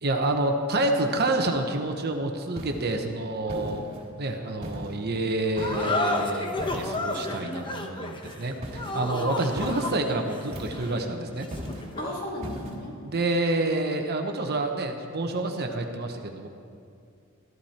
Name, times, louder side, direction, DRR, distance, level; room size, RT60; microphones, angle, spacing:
voice 1, 0.0-3.9 4.2-11.5 13.0-16.5, right 2 dB, 50° right, 4 dB, 1.0 m, -28 dB
sound 1, 2.6-2.9 3.5-4.1 4.6-5.0 5.6-6.0 6.6-7.1 8.6-9.0 9.6-10.0 10.5-11.0 11.5-11.9 12.4-12.8, equal, 30° right, 3.1 m, -37 dB
sound 2, 5.6-12.3, left 2 dB, 25° left, 1.0 m, -32 dB
voice 2, 8.9-9.3 12.0-12.9, left 1 dB, 45° left, -4 dB, 3.2 m, -36 dB
14.0 x 13.5 x 4.4 m, 2.5 s
head